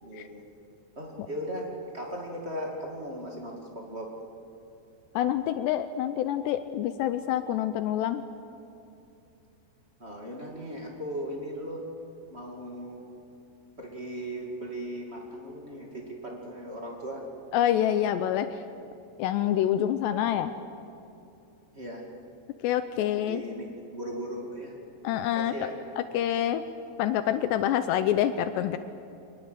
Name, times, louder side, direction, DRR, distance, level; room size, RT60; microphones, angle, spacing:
voice 1, 0.0-0.4 0.9-4.1 10.0-11.8 12.3-13.0 13.8-17.2 21.7-22.0 23.0-24.7 25.3-25.8, equal, 35° right, -1 dB, 0.9 m, -37 dB
voice 2, 5.2-8.2 17.5-18.5 19.2-20.5 22.6-23.4 25.0-25.5 26.1-26.6 27.0-28.8, left 11 dB, 85° left, 11 dB, 2.5 m, -26 dB
23.5 x 20.5 x 8.0 m, 2.7 s
omnidirectional pair, 5.6 m